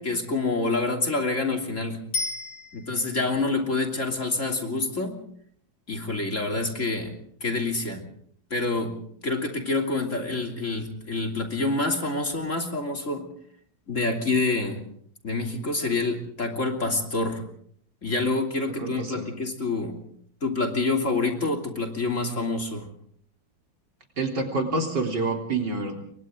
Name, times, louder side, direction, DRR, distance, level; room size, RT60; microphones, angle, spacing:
voice 1, 0.0-2.0 2.7-5.1 5.9-7.1 7.4-8.1 8.5-8.9 9.2-13.2 13.9-14.8 15.2-17.4 18.0-20.0 20.4-22.9, left 3 dB, 40° left, 2 dB, 3.3 m, -27 dB
Bicycle bell, 2.1-3.3 12.3-12.4, left 3 dB, 60° left, 3.9 m, -32 dB
voice 2, 18.8-19.3 24.2-26.0, right 3 dB, 60° right, 2 dB, 4.1 m, -27 dB
29.0 x 23.5 x 3.8 m, 0.64 s
omnidirectional pair, 2.1 m